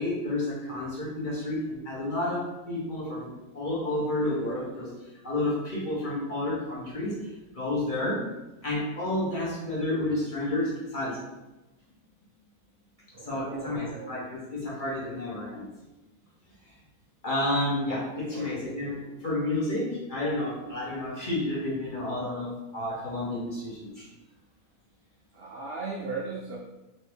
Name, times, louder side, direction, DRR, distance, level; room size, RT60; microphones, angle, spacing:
voice 1, 0.0-3.3 3.5-4.9 5.2-7.1 7.5-8.2 8.6-11.2 13.3-15.6 17.2-19.0 19.2-23.9, left 1 dB, 35° left, -6 dB, 1.1 m, -30 dB
voice 2, 13.1-14.2 18.2-18.6 25.3-26.6, right 4 dB, 60° right, -4 dB, 0.6 m, -37 dB
4.2 x 2.8 x 3.4 m, 1.0 s
omnidirectional pair, 1.6 m